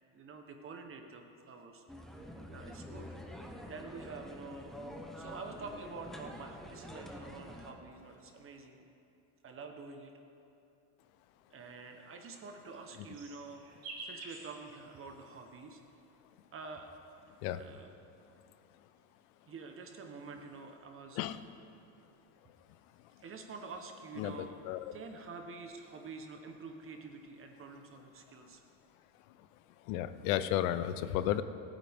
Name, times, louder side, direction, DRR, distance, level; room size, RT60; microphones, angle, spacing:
voice 1, 0.1-1.8 2.5-3.1 3.7-4.8 5.2-8.9 9.4-10.1 11.5-15.8 16.5-16.9 17.6-17.9 19.5-21.2 23.2-24.6 24.9-28.6, right 4 dB, 30° right, 4 dB, 1.2 m, -47 dB
sound 1, 1.9-7.7, equal, ahead, 1.2 m, -47 dB
sound 2, 12.4-15.8 16.8-18.1 19.0-20.8 22.2-24.4 24.8-25.3 25.6-26.7 27.0-27.6, right 2 dB, 60° right, 3.9 m, -53 dB
voice 2, 24.2-24.9 29.8-31.4, left 12 dB, 85° left, 13 dB, 0.8 m, -33 dB
25.5 x 9.2 x 3.6 m, 2.8 s
cardioid pair, 130°, 40 cm